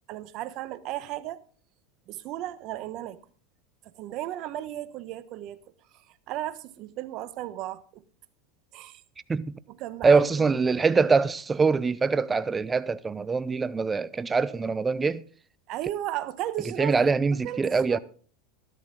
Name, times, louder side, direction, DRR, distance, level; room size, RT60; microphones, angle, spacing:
voice 1, 0.1-1.4 2.1-3.2 3.8-5.6 5.9-8.0 8.7-9.0 9.7-10.8 15.7-17.0 17.3-18.0, right 13 dB, 50° right, 1.1 m, -35 dB
voice 2, 10.0-15.2 16.8-18.0, right 4 dB, 20° right, 0.7 m, -23 dB
13.0 x 12.5 x 3.9 m
hypercardioid pair, 105°, 0 cm